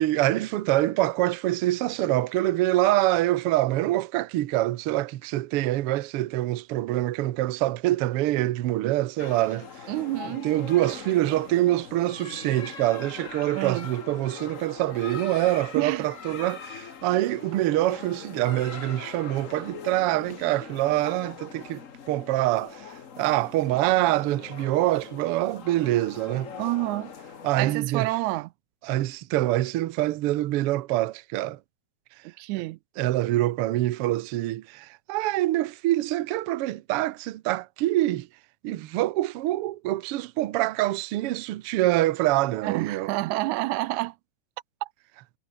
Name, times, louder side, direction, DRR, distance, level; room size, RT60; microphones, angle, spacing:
voice 1, 0.0-9.7 10.2-21.8 22.1-26.5 27.4-28.1 28.8-31.6 33.0-38.3 38.6-43.1, right 15 dB, 70° right, 1.5 m, -25 dB
sound 1, 9.2-27.8, left 7 dB, 45° left, 1.0 m, -42 dB
voice 2, 9.9-10.5 13.6-13.9 15.8-16.1 26.6-27.1 27.6-28.5 32.2-32.8 42.6-44.2 44.8-44.9, right 19 dB, 85° right, 2.0 m, -28 dB
omnidirectional pair, 3.3 m